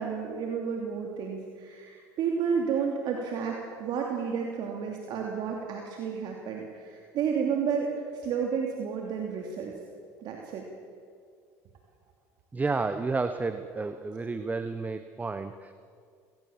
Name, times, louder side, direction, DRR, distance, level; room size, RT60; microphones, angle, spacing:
voice 1, 0.0-9.7 10.2-10.6, right 6 dB, 60° right, 1 dB, 2.9 m, -31 dB
voice 2, 12.5-15.7, right 3 dB, 20° right, 10 dB, 1.1 m, -31 dB
22.5 x 18.0 x 7.2 m, 2.2 s
supercardioid pair, 85°, 9 cm